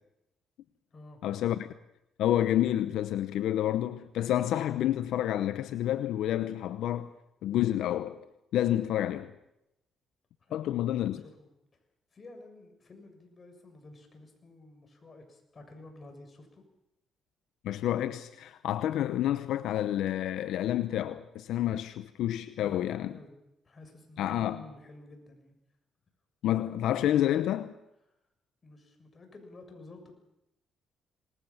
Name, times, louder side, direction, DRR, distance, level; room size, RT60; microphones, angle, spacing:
voice 1, 1.2-1.7 2.2-7.1 7.4-8.2 8.5-9.3 10.5-11.2 17.6-23.2 24.2-24.6 26.4-27.7, left 12 dB, 85° left, 0.9 m, -29 dB
voice 2, 10.4-10.7 11.1-11.4 12.1-16.6 22.6-23.3 23.6-25.6 28.1-28.2 28.6-30.1, left 2 dB, 35° left, 7.0 m, -51 dB
27.5 x 20.0 x 7.3 m
cardioid pair, 90°, 0 cm